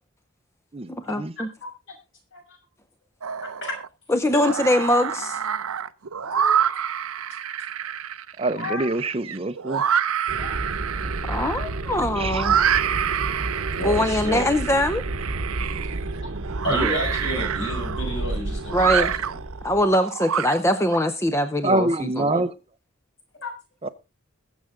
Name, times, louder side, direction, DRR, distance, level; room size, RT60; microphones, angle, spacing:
voice 1, 0.9-1.5 4.1-5.4 11.2-12.6 13.8-15.0 18.7-19.1 19.6-22.4, left 1 dB, 15° left, 10 dB, 0.6 m, -22 dB
sound 1, 3.2-3.9 4.2-21.0, right 8 dB, 90° right, 0.7 m, -27 dB
voice 2, 3.4-3.7 6.2-6.5 8.6-8.9 10.4-10.6 13.8-14.5 16.6-19.3 23.4-23.5, left 1 dB, 60° left, 1 dB, 6.0 m, -31 dB
voice 3, 8.4-9.8 12.2-12.4 16.7-17.1 21.6-22.5 23.8-23.9, right 2 dB, 25° right, 12 dB, 0.6 m, -25 dB
sound 2, 10.3-19.9, right 2 dB, 65° right, 1.0 m, -31 dB
21.0 x 7.1 x 3.7 m, 0.28 s
head